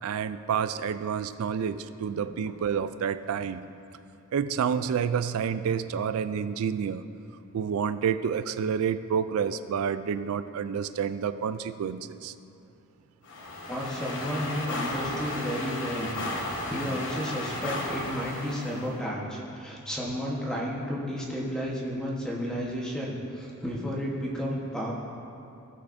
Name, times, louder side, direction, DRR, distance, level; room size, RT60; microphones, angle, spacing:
voice 1, 0.0-3.6 4.3-7.0 7.5-12.3, right 7 dB, 70° right, 13 dB, 0.3 m, -29 dB
sound 1, 13.2-18.9, left 2 dB, 55° left, 1.1 m, -34 dB
voice 2, 13.7-16.1 16.4-24.9, equal, 5° left, -4 dB, 1.1 m, -32 dB
16.5 x 5.9 x 2.6 m, 2.7 s
head